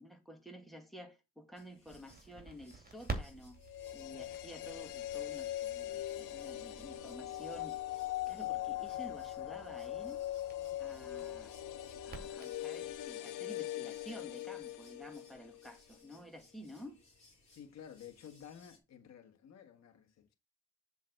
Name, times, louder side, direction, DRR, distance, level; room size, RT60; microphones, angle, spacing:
voice 1, 0.0-3.6 3.9-7.8 8.3-10.2 10.8-11.5 12.0-17.0, equal, ahead, 2.1 m, -51 dB
sound 1, 1.5-18.8, left 2 dB, 20° left, 3.9 m, -66 dB
Crackle, 1.9-13.1, right 3 dB, 30° right, 2.5 m, -50 dB
sound 2, 3.6-15.8 16.0-16.1, left 14 dB, 85° left, 0.9 m, -41 dB
voice 2, 17.5-20.3, left 9 dB, 60° left, 1.6 m, -53 dB
7.4 x 4.0 x 6.5 m
cardioid pair, 90°, 30 cm